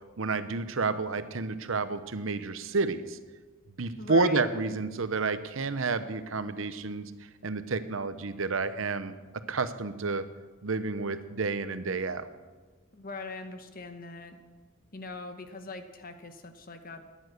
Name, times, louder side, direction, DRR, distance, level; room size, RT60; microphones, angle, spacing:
voice 1, 0.2-3.2 3.8-7.1 7.4-9.1 9.5-10.2 10.6-12.3, right 3 dB, 65° right, 12 dB, 0.8 m, -30 dB
voice 2, 4.0-4.4 12.9-14.4 14.9-17.0, left 3 dB, 40° left, 8 dB, 1.0 m, -41 dB
14.0 x 10.5 x 6.5 m, 1.3 s
head